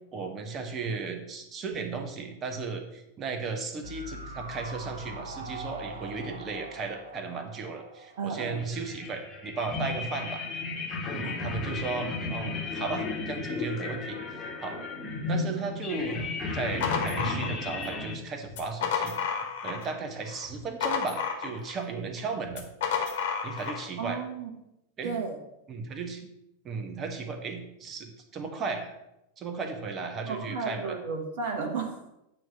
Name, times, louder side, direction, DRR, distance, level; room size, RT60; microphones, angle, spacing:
voice 1, 0.1-10.4 11.1-14.2 14.6-14.8 15.3-16.2 16.5-19.1 19.6-22.6 23.4-24.2 25.0-25.2 25.7-26.3 26.6-29.0 29.4-31.0, right 4 dB, 30° right, 5 dB, 1.2 m, -35 dB
sound 1, 3.8-9.1 9.4-9.5, right 1 dB, 70° right, 0.8 m, -43 dB
voice 2, 8.2-8.6 11.2-11.6 15.3-15.5 24.0-24.5 25.0-25.4 30.2-32.1, right 4 dB, 50° right, 2 dB, 1.2 m, -34 dB
sound 2, 8.5-18.2, left 3 dB, 20° left, 1.5 m, -34 dB
sound 3, 16.8-18.0 18.5-20.0 20.3-21.8 22.5-23.9, left 7 dB, 55° left, 1.5 m, -31 dB
9.1 x 3.2 x 6.6 m, 0.87 s
figure-of-eight pair, 90°, 0 cm